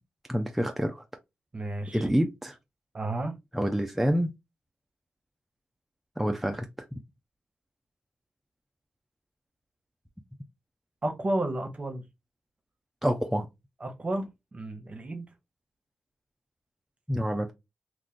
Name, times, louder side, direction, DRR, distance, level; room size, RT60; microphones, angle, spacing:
voice 1, 0.3-1.0 1.9-2.6 3.5-4.3 6.2-6.7 6.9-7.0 13.0-13.5 17.1-17.5, equal, 5° right, 0.5 m, -27 dB
voice 2, 1.5-2.1 2.9-3.3 11.0-12.0 13.8-15.3, right 1 dB, 35° right, 0.9 m, -32 dB
2.5 x 2.4 x 3.6 m
supercardioid pair, 50°, 4 cm